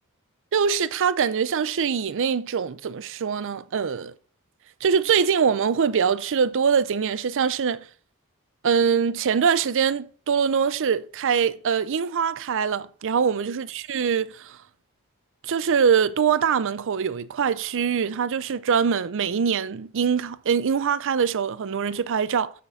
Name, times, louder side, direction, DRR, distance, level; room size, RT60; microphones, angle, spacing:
voice 1, 0.5-4.1 4.8-7.8 8.6-14.6 15.4-22.5, right 6 dB, 60° right, 0.5 m, -23 dB
8.1 x 6.5 x 4.1 m
head